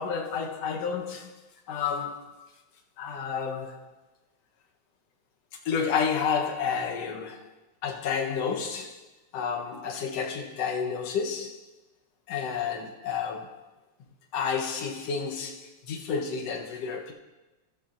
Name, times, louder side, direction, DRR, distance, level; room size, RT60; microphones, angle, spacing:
voice 1, 0.0-1.3 1.7-2.5 3.0-3.9 5.7-7.5 7.8-9.0 9.3-11.6 12.3-13.6 14.3-17.1, left 6 dB, 65° left, 2 dB, 2.0 m, -30 dB
13.0 x 13.0 x 2.5 m, 1.1 s
omnidirectional pair, 3.3 m